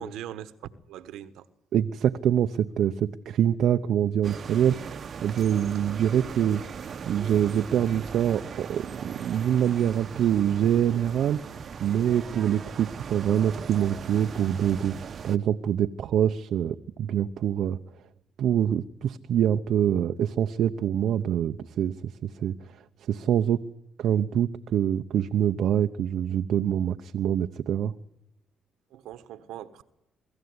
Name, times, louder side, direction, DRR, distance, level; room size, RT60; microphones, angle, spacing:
voice 1, 0.0-1.5 28.9-29.8, right 11 dB, 90° right, 1.3 m, -41 dB
voice 2, 1.7-6.7 7.1-17.8 18.4-22.8 23.1-23.6 24.0-27.9, right 10 dB, 75° right, 0.8 m, -25 dB
sound 1, 4.2-15.4, right 6 dB, 50° right, 1.1 m, -39 dB
24.0 x 14.5 x 9.6 m
cardioid pair, 90°, 0 cm